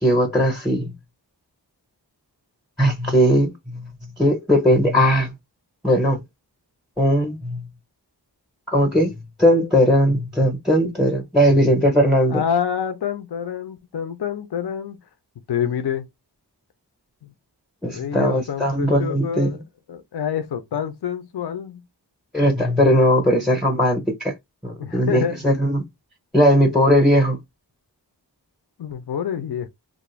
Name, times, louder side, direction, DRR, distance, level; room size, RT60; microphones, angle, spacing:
voice 1, 0.0-0.9 2.8-3.9 4.2-5.3 5.8-6.2 7.0-7.7 8.7-12.4 17.8-19.6 22.3-24.3 24.6-25.9 26.3-27.4, equal, ahead, 0.6 m, -18 dB
voice 2, 12.3-15.0 15.5-16.1 17.2-17.3 17.8-19.6 19.9-21.8 24.8-25.4 28.8-29.7, left 8 dB, 65° left, 0.5 m, -27 dB
2.4 x 2.0 x 3.0 m
wide cardioid pair, 45°, 42 cm